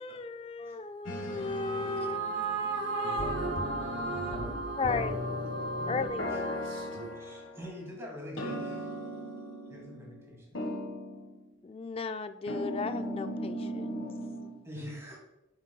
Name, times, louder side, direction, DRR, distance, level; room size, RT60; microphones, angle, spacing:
voice 1, 0.0-2.2 4.8-5.2 5.9-6.3 11.6-14.0, left 4 dB, 30° left, 0.3 m, -35 dB
sound 1, 1.0-2.2 3.2-4.5 4.8-7.8 8.4-10.3 10.5-11.4 12.5-14.6, left 1 dB, 75° left, 1.4 m, -37 dB
voice 2, 1.0-7.2, right 3 dB, 85° right, 2.0 m, -35 dB
voice 3, 7.2-8.9 9.7-10.6 14.6-15.2, equal, 15° right, 2.3 m, -44 dB
9.4 x 7.2 x 2.3 m
head